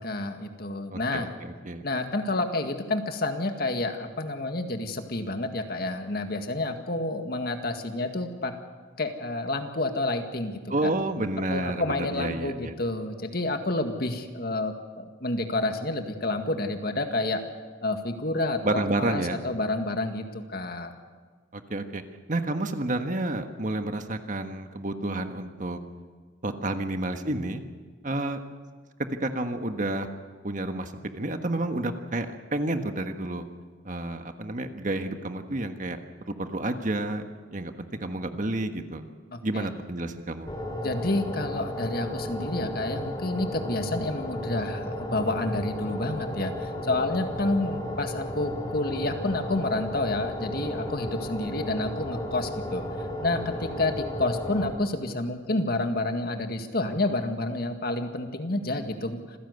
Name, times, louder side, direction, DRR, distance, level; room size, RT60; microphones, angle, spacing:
voice 1, 0.0-1.3 1.8-8.5 9.0-10.9 11.5-17.4 17.8-20.9 39.3-39.7 40.8-52.8 53.2-59.4, left 2 dB, 55° left, 6 dB, 2.0 m, -29 dB
voice 2, 0.9-1.9 10.7-12.7 18.6-19.4 21.5-22.0 22.3-25.8 26.4-27.6 28.0-28.4 29.2-30.1 30.4-33.4 33.8-36.0 36.3-37.2 37.5-39.0 39.4-40.5, right 2 dB, 45° right, 7 dB, 1.5 m, -30 dB
sound 1, 40.5-54.7, left 1 dB, 20° left, 3.0 m, -34 dB
27.0 x 16.5 x 8.2 m, 1.5 s
head